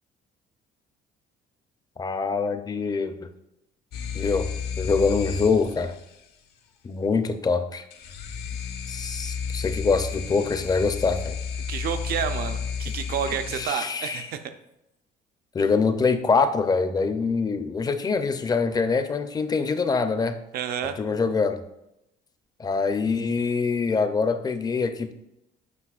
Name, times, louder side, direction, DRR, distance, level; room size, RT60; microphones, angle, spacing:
voice 1, 2.0-3.3 4.1-4.5 4.8-5.9 6.8-7.8 8.9-11.4 13.5-14.3 15.5-20.4 21.0-21.6 22.6-25.1, left 4 dB, 25° left, 9 dB, 0.5 m, -24 dB
sound 1, 3.9-6.2 7.9-13.7, left 6 dB, 75° left, 0.8 m, -32 dB
voice 2, 11.7-14.5 20.5-21.0, right 8 dB, 65° right, 9 dB, 0.6 m, -30 dB
8.4 x 5.3 x 2.4 m, 0.85 s
cardioid pair, 110°, 17 cm